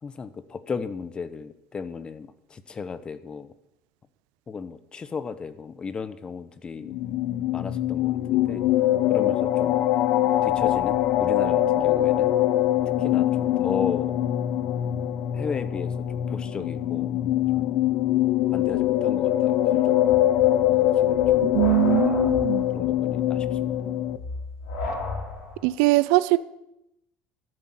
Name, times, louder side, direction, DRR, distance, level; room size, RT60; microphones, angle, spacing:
voice 1, 0.0-3.5 4.5-6.9 7.5-8.6 9.1-9.8 10.4-12.4 13.0-14.2 15.3-17.1 17.6-17.7 18.5-20.1 20.7-21.5 22.0-22.2 22.7-23.8, left 5 dB, 30° left, 13 dB, 1.0 m, -35 dB
sound 1, 6.8-24.2, left 13 dB, 70° left, 0.9 m, -23 dB
sound 2, 20.0-25.8, left 2 dB, 90° left, 4.9 m, -35 dB
voice 2, 21.5-22.7 25.6-26.4, right 19 dB, 80° right, 17 dB, 0.6 m, -21 dB
12.5 x 9.4 x 7.8 m, 0.84 s
supercardioid pair, 100°, 3 cm